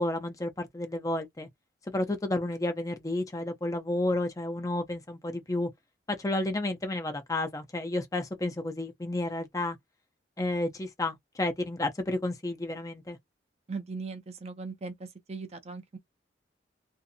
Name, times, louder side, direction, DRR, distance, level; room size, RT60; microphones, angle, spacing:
voice 1, 0.0-1.5 1.9-5.7 6.1-9.8 10.4-13.2, left 2 dB, 20° left, 0.5 m, -31 dB
voice 2, 13.7-16.0, right 4 dB, 35° right, 0.5 m, -39 dB
2.6 x 2.5 x 2.5 m
head